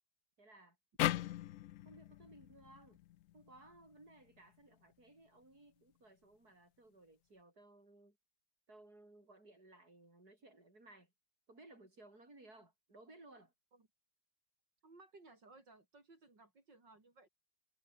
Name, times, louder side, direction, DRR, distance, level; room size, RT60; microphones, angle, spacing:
voice 1, 0.4-1.3 1.8-3.0 3.3-8.2 8.7-11.1 11.5-13.5, right 2 dB, 60° right, 8.3 m, -60 dB
sound 1, 1.0-4.2, left 14 dB, 80° left, 0.7 m, -39 dB
voice 2, 14.8-17.3, right 3 dB, 85° right, 6.1 m, -61 dB
omnidirectional pair, 1.9 m